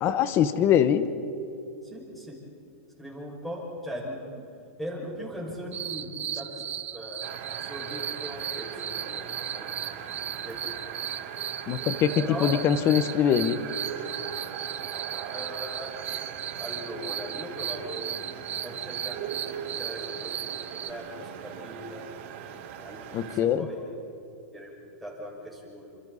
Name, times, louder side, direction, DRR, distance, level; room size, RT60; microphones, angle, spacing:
voice 1, 0.0-1.1 11.7-13.6 23.1-23.7, left 9 dB, 30° left, 12 dB, 1.2 m, -23 dB
voice 2, 1.8-2.4 3.0-4.4 4.8-7.3 7.6-10.1 10.4-10.7 12.2-12.5 15.3-15.9 16.5-18.2 18.6-22.0 22.8-23.8 24.5-26.0, equal, ahead, -3 dB, 6.3 m, -40 dB
sound 1, 5.7-20.9, right 10 dB, 20° right, 0.6 m, -36 dB
sound 2, 7.2-23.4, right 8 dB, 50° right, 3.2 m, -39 dB
30.0 x 27.0 x 4.2 m, 2.8 s
supercardioid pair, 150°, 8 cm